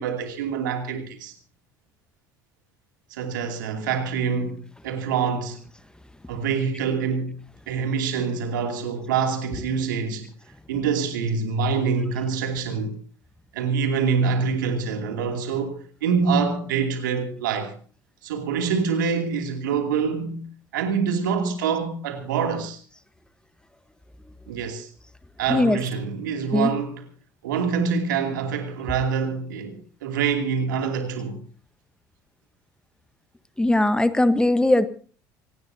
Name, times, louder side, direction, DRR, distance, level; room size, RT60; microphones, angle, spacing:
voice 1, 0.0-1.3 3.1-5.6 6.3-7.4 7.7-10.3 10.7-13.0 13.5-17.8 18.2-20.4 20.7-22.8 24.5-24.9 25.4-27.0 27.4-31.4, right 6 dB, 75° right, 2.7 m, -25 dB
voice 2, 25.5-25.8 26.5-26.7 33.6-34.9, left 1 dB, 10° left, 1.2 m, -19 dB
25.5 x 18.0 x 2.8 m
hypercardioid pair, 65°, 10 cm